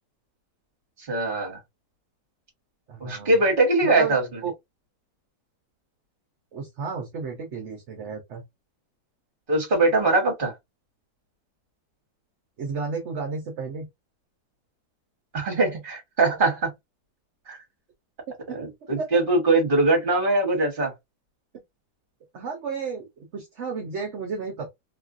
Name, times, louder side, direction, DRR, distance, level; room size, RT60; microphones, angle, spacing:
voice 1, 1.0-1.6 3.0-4.4 9.5-10.5 15.3-16.7 17.5-17.6 18.5-20.9, right 2 dB, 35° right, 1.3 m, -22 dB
voice 2, 2.9-3.3 3.8-4.2 4.4-4.5 6.5-8.4 12.6-13.9 18.3-18.6 19.0-19.1 22.3-24.7, right 5 dB, 55° right, 0.9 m, -32 dB
3.1 x 2.4 x 2.5 m
omnidirectional pair, 1.8 m